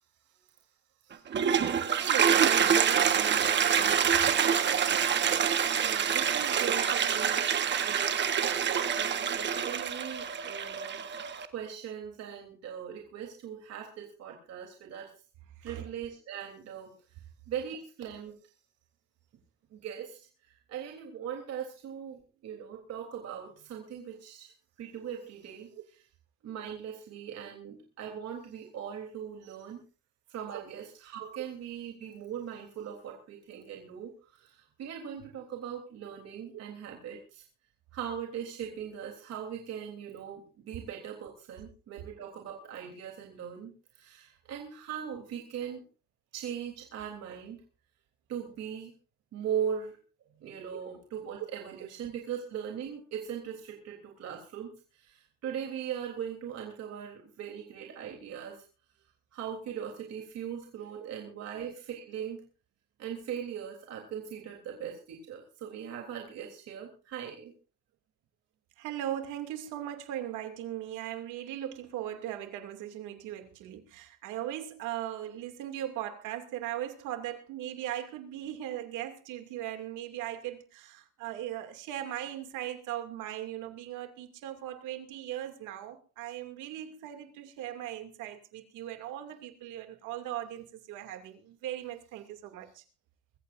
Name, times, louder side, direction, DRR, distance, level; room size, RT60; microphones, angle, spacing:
voice 1, 1.0-1.6 2.0-5.6 5.8-15.1 15.6-16.9 17.5-18.5 19.7-24.5 24.8-26.1 26.4-29.8 30.3-37.4 37.9-45.8 46.3-47.6 48.3-48.9 49.3-50.0 50.4-58.6 59.3-62.4 63.0-67.5, right 8 dB, 55° right, 3.4 m, -40 dB
Toilet flush, 1.1-11.5, right 8 dB, 35° right, 1.4 m, -26 dB
voice 2, 68.8-92.8, right 12 dB, 75° right, 2.6 m, -39 dB
24.0 x 15.0 x 2.6 m
cardioid pair, 140°, 30 cm